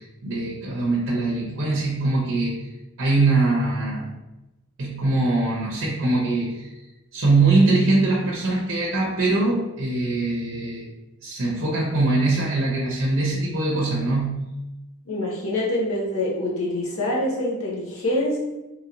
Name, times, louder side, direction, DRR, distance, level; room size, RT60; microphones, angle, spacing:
voice 1, 0.0-2.5 3.0-4.1 4.8-6.7 7.1-10.8 11.2-14.5, right 2 dB, 60° right, -4 dB, 0.6 m, -22 dB
voice 2, 15.1-18.4, left 1 dB, 70° left, -3 dB, 0.8 m, -25 dB
3.0 x 2.9 x 2.5 m, 1.0 s
head